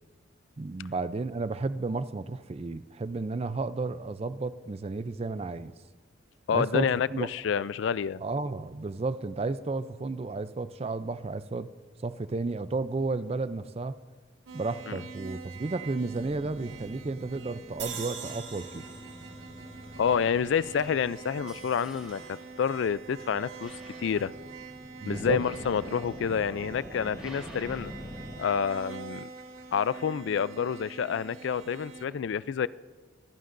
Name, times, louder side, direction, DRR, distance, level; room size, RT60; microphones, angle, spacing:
voice 1, 0.6-5.7 6.5-7.3 8.2-11.7 12.0-14.0 14.5-18.9 25.0-25.4, right 3 dB, 30° right, 14 dB, 0.4 m, -32 dB
voice 2, 6.5-8.2 14.9-15.0 20.0-23.7 24.0-24.3 25.1-27.9 28.4-29.3 29.7-32.7, left 7 dB, 65° left, 18 dB, 0.3 m, -28 dB
sound 1, 14.5-32.1, right 5 dB, 80° right, 1.6 m, -46 dB
sound 2, 16.0-28.4, equal, 5° right, 4.3 m, -46 dB
sound 3, 17.8-21.1, right 7 dB, 60° right, 1.7 m, -43 dB
24.5 x 15.0 x 2.6 m, 1.4 s
head